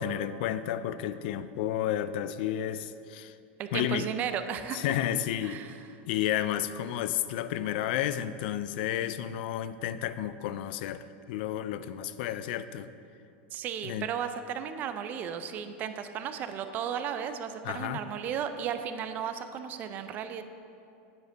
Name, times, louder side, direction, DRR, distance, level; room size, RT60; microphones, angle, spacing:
voice 1, 0.0-3.4 3.7-4.1 4.7-5.7 6.1-12.9 13.8-14.1 17.6-18.0, left 11 dB, 55° left, 13 dB, 0.3 m, -31 dB
voice 2, 3.6-4.8 5.4-5.8 13.5-20.4, right 8 dB, 30° right, 9 dB, 0.4 m, -34 dB
9.3 x 4.9 x 4.5 m, 2.6 s
supercardioid pair, 155°, 6 cm